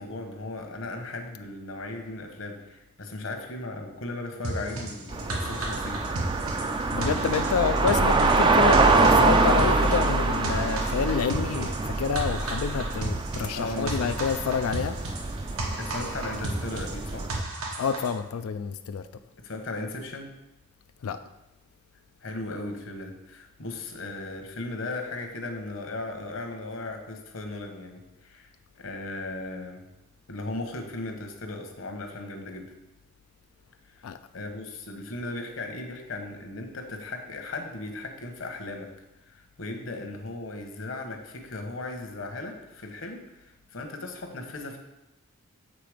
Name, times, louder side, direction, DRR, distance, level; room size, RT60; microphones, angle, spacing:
voice 1, 0.0-6.0 13.5-14.2 15.8-17.3 19.4-20.3 22.2-29.8 30.3-32.7 33.9-38.9 39.3-44.8, left 2 dB, 65° left, 4 dB, 1.0 m, -37 dB
sound 1, 4.4-18.1, right 2 dB, 85° right, 1.1 m, -34 dB
sound 2, 5.1-17.4, right 3 dB, 20° right, 0.3 m, -25 dB
voice 2, 6.9-15.0 17.8-19.0 21.0-21.2 34.0-34.2, left 6 dB, 85° left, 9 dB, 0.4 m, -28 dB
7.5 x 3.9 x 4.9 m, 0.96 s
head